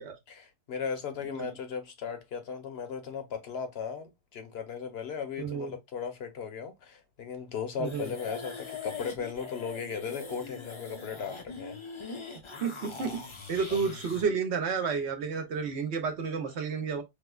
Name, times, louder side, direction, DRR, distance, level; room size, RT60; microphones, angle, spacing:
voice 1, 0.3-11.8 13.7-13.8, left 6 dB, 60° left, 1.0 m, -37 dB
voice 2, 1.2-1.5 5.4-5.7 7.8-8.1 12.6-17.0, right 5 dB, 70° right, 1.0 m, -31 dB
sound 1, 7.8-14.2, left 4 dB, 40° left, 0.5 m, -42 dB
4.8 x 2.1 x 2.2 m
omnidirectional pair, 1.2 m